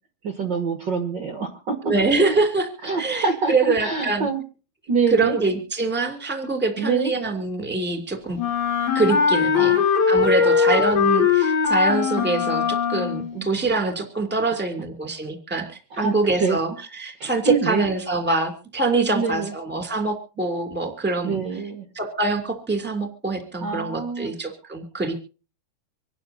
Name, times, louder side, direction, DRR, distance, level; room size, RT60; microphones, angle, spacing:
voice 1, 0.2-1.7 2.8-4.4 4.9-5.3 6.8-7.1 9.5-9.9 10.4-10.8 13.3-13.5 15.9-16.6 17.2-17.9 19.1-19.5 21.2-21.8 23.6-24.3, right 5 dB, 70° right, 7 dB, 1.0 m, -25 dB
voice 2, 1.8-4.3 5.1-8.4 8.9-9.8 10.1-21.4 21.9-25.1, right 3 dB, 5° right, 5 dB, 1.7 m, -24 dB
Wind instrument woodwind instrument, 8.4-13.4, left 6 dB, 90° left, 5.0 m, -20 dB
25.5 x 11.5 x 2.7 m, 0.36 s
omnidirectional pair, 4.9 m